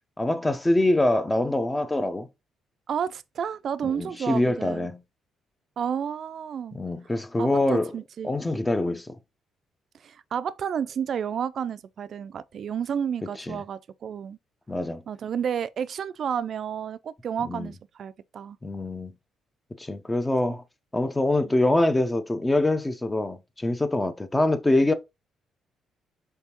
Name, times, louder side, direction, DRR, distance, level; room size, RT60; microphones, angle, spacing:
voice 1, 0.2-2.3 3.8-5.0 6.7-7.9 8.2-9.2 13.4-13.6 14.7-15.0 17.4-17.7 18.6-19.1 19.8-20.6 20.9-24.9, left 2 dB, 15° left, 0.6 m, -24 dB
voice 2, 2.9-4.9 5.8-6.8 7.4-8.3 10.0-14.4 15.1-18.6 21.4-21.5, right 8 dB, 60° right, 0.3 m, -31 dB
4.4 x 3.5 x 2.9 m
cardioid pair, 90°, 0 cm